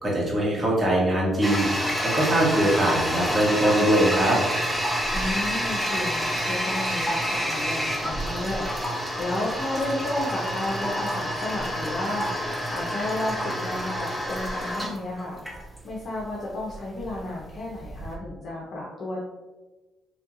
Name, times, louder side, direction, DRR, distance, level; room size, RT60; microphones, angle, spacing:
voice 1, 0.0-1.7 2.0-4.4, right 1 dB, 25° right, -4 dB, 1.5 m, -22 dB
Toilet flush, 1.4-18.1, equal, 5° right, 0.8 m, -28 dB
voice 2, 5.1-15.4 15.8-19.2, left 1 dB, 55° left, -4 dB, 0.7 m, -32 dB
4.3 x 2.7 x 2.6 m, 1.2 s
cardioid pair, 90°, 0 cm